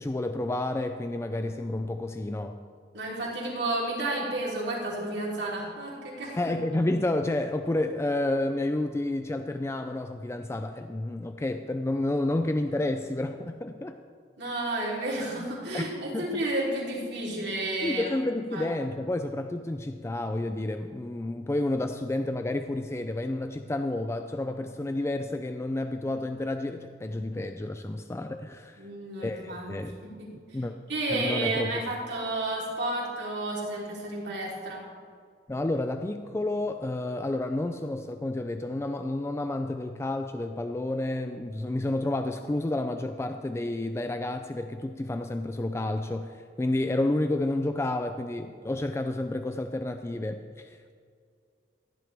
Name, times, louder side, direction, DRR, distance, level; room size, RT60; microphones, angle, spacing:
voice 1, 0.0-2.6 6.4-14.0 15.7-16.5 17.8-28.8 29.2-30.0 30.5-30.7 31.1-31.8 35.5-50.9, left 2 dB, 15° left, 7 dB, 0.3 m, -30 dB
voice 2, 2.9-6.4 14.4-18.1 18.5-18.7 28.8-29.8 30.0-30.3 30.9-34.8, right 2 dB, 70° right, -5 dB, 3.6 m, -31 dB
15.5 x 11.0 x 3.5 m, 2.2 s
head